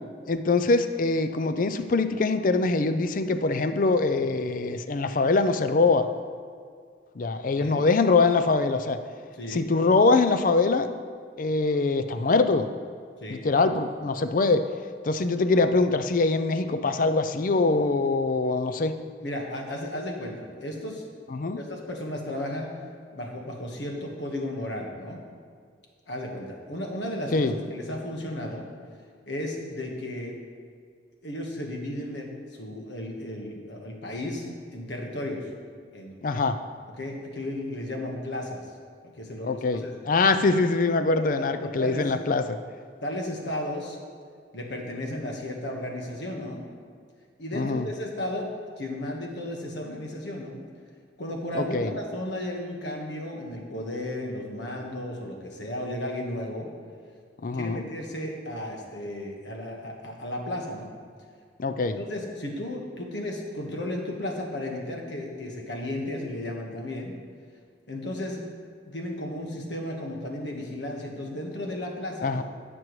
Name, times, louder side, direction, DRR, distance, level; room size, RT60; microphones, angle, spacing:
voice 1, 0.3-6.1 7.2-9.0 9.5-10.9 11.4-12.7 13.3-14.6 15.0-18.9 21.3-21.6 27.3-27.5 36.2-36.6 39.5-42.6 47.5-47.9 51.5-51.9 57.4-57.8 61.6-62.0 72.2-72.4, left 3 dB, 50° left, 10 dB, 0.4 m, -23 dB
voice 2, 9.4-9.7 13.2-13.4 19.2-21.0 21.6-22.7 23.1-25.2 26.1-28.7 29.3-30.3 31.2-32.3 32.6-35.4 35.9-36.2 37.0-38.6 39.1-39.9 41.4-42.1 43.0-44.0 44.5-46.6 47.4-50.6 51.2-56.7 57.5-60.9 62.0-67.1 67.9-68.4 68.9-72.4, left 1 dB, 75° left, 0 dB, 1.4 m, -34 dB
14.5 x 6.1 x 3.2 m, 2.1 s
head